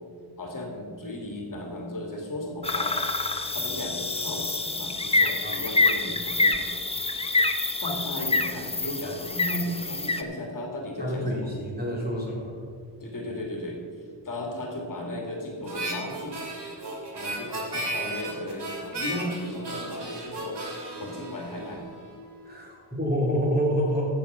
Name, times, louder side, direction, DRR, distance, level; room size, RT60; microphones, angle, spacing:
voice 1, 0.4-3.0 3.5-6.6 7.8-11.4 13.0-13.8 14.2-16.5 17.1-20.6 21.0-21.8, left 1 dB, 45° left, 1 dB, 2.2 m, -35 dB
sound 1, 2.6-10.2, left 3 dB, 15° left, 0.7 m, -26 dB
voice 2, 11.0-12.6 22.4-24.2, equal, 20° right, -3 dB, 3.5 m, -27 dB
Harmonica, 15.6-22.1, right 1 dB, 60° right, 2.6 m, -35 dB
14.5 x 7.3 x 5.5 m, 2.2 s
wide cardioid pair, 100°, 46 cm